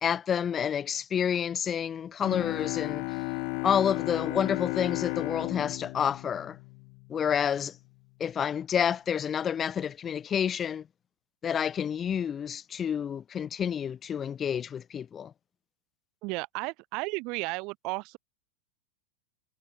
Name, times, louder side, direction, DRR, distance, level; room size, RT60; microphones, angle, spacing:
voice 1, 0.0-3.2 3.6-6.6 7.1-7.8 8.2-10.8 11.4-15.3, left 8 dB, 25° left, 0.3 m, -29 dB
Bowed string instrument, 2.2-7.3, left 40 dB or more, 45° left, 0.7 m, -34 dB
voice 2, 16.2-18.2, right 27 dB, 40° right, 0.8 m, -33 dB
figure-of-eight pair, 90°, 0 cm